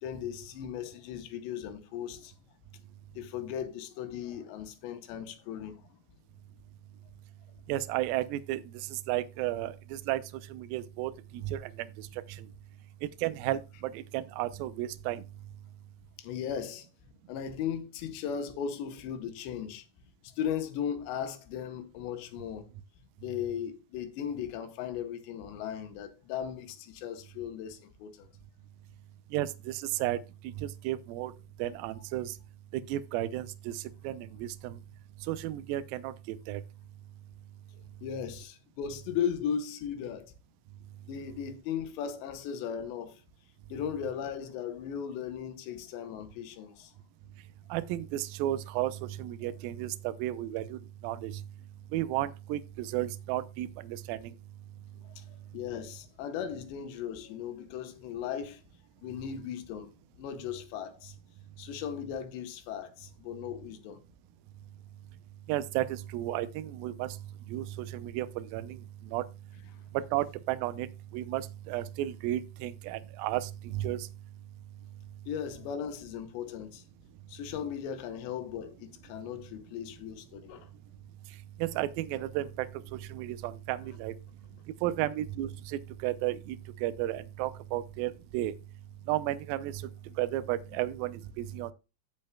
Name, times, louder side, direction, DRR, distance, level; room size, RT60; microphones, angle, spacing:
voice 1, 0.0-2.3 3.2-5.8 16.2-16.9 17.3-19.8 20.2-22.7 23.2-28.3 38.0-40.3 41.1-43.2 43.7-46.9 55.2-55.3 55.5-58.6 59.0-59.9 60.2-61.1 61.6-64.0 75.3-76.8 77.3-80.7, left 8 dB, 85° left, 3.3 m, -37 dB
voice 2, 7.7-12.5 13.0-15.2 29.3-31.3 31.6-32.4 32.7-34.8 35.3-36.6 47.7-51.4 51.9-54.3 65.5-67.2 67.5-69.3 69.9-74.1 81.6-82.7 82.9-84.1 84.8-88.5 89.1-89.9 90.2-91.7, right 14 dB, 80° right, 2.1 m, -33 dB
16.0 x 5.5 x 2.3 m
omnidirectional pair, 4.9 m